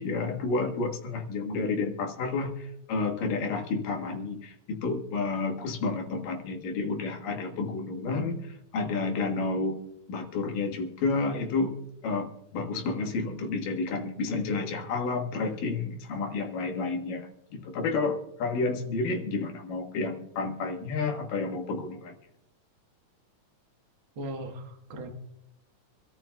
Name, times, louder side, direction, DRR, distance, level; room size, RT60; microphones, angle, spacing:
voice 1, 0.0-9.8 10.1-11.7 12.0-22.1, left 3 dB, 90° left, 3 dB, 3.2 m, -30 dB
voice 2, 24.2-25.1, right 1 dB, 50° right, 3 dB, 1.7 m, -38 dB
26.0 x 13.5 x 2.3 m, 0.83 s
omnidirectional pair, 3.7 m